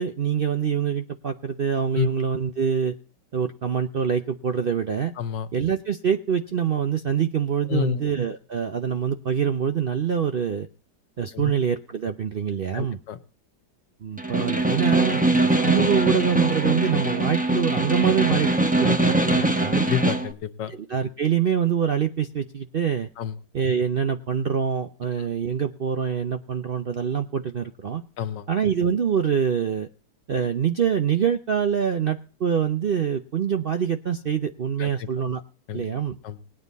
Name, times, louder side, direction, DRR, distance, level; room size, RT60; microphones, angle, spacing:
voice 1, 0.0-3.0 3.3-5.1 5.5-10.7 11.2-13.0 14.0-19.9 20.7-23.1 23.5-28.0 28.5-29.9 30.3-35.4 35.7-36.2, right 7 dB, 60° right, 7 dB, 0.6 m, -25 dB
voice 2, 5.2-5.5 7.7-8.0 11.3-11.5 12.7-13.2 18.8-19.1 19.7-20.7 23.2-23.3 28.2-28.4 34.8-35.1 35.7-35.8 36.2-36.4, left 11 dB, 90° left, 11 dB, 1.6 m, -29 dB
Snare drum, 14.2-20.3, right 2 dB, 5° right, 0.7 m, -22 dB
19.5 x 9.4 x 4.0 m, 0.38 s
omnidirectional pair, 1.8 m